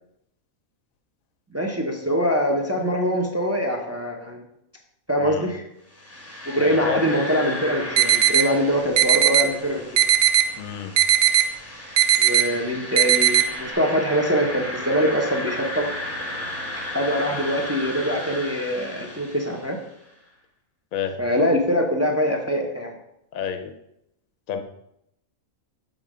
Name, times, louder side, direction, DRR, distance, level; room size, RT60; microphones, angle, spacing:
voice 1, 1.5-4.4 5.1-5.6 6.5-10.0 12.2-15.9 16.9-19.8 21.2-22.9, equal, 15° right, 1 dB, 0.6 m, -23 dB
sound 1, 5.9-19.9, left 1 dB, 10° left, 0.9 m, -34 dB
voice 2, 6.6-7.0 10.6-10.9 20.9-21.1 23.3-23.7 24.5-24.6, left 8 dB, 80° left, 7 dB, 1.1 m, -29 dB
sound 2, 8.0-8.4 9.0-9.4 10.0-10.4 11.0-11.4 12.0-12.4 13.0-13.4, right 11 dB, 80° right, 1.0 m, -17 dB
6.6 x 3.9 x 4.9 m, 0.80 s
omnidirectional pair, 1.4 m